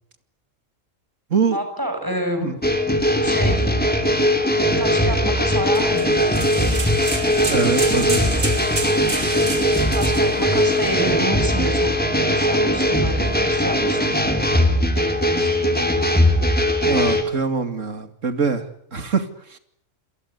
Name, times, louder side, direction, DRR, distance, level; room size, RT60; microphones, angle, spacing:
voice 1, 1.5-2.5 3.2-3.7 4.8-6.3 9.9-14.2 14.8-15.7, equal, 15° right, 7.0 m, -29 dB
sound 1, 2.6-17.2, equal, 5° left, 3.7 m, -19 dB
sound 2, 5.7-11.1, right 3 dB, 55° right, 3.1 m, -31 dB
voice 2, 7.5-8.3 16.9-18.7 18.9-19.6, right 5 dB, 70° right, 2.8 m, -23 dB
29.0 x 22.5 x 8.2 m
omnidirectional pair, 1.3 m